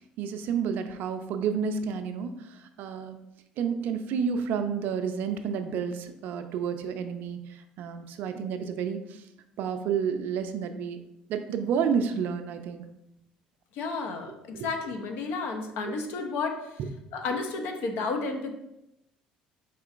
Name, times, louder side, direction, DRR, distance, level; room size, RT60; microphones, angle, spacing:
voice 1, 0.2-3.2 3.6-9.2 9.6-11.0 11.3-12.8, right 6 dB, 65° right, 8 dB, 0.4 m, -30 dB
voice 2, 13.7-16.6 17.1-18.5, left 4 dB, 70° left, 4 dB, 0.5 m, -32 dB
4.2 x 3.7 x 2.5 m, 0.87 s
hypercardioid pair, 65°, 3 cm